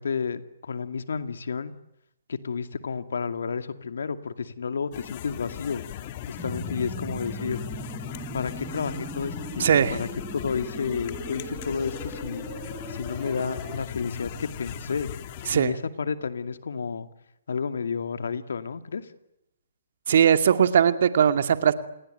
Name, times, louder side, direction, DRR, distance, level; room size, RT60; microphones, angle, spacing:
voice 1, 0.0-1.7 2.3-5.8 6.3-7.6 8.3-10.1 10.3-12.5 12.9-15.1 15.5-17.1 17.5-19.1, left 5 dB, 75° left, 10 dB, 2.3 m, -31 dB
sound 1, 4.9-15.5, left 11 dB, 40° left, 2.4 m, -39 dB
sound 2, 6.4-13.8, right 1 dB, 5° right, 5.1 m, -38 dB
voice 2, 9.6-10.0 15.5-15.7 20.1-21.7, right 8 dB, 60° right, 10 dB, 2.3 m, -19 dB
28.5 x 20.5 x 9.3 m, 0.85 s
hypercardioid pair, 140°, 0 cm